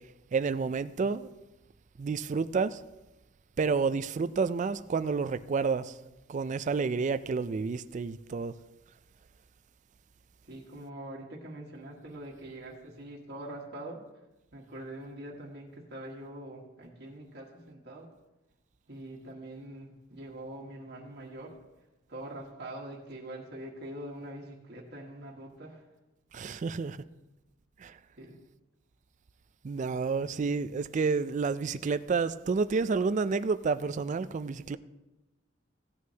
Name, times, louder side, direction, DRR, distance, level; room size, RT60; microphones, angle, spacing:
voice 1, 0.3-1.3 2.0-2.8 3.6-5.9 6.3-8.5 26.3-27.0 27.8-27.9 29.6-34.8, right 4 dB, 40° right, 0.3 m, -29 dB
voice 2, 10.4-14.0 14.5-18.1 18.9-21.6 22.1-25.8 28.2-28.4, right 1 dB, 55° right, 1.5 m, -44 dB
16.0 x 9.4 x 2.8 m
head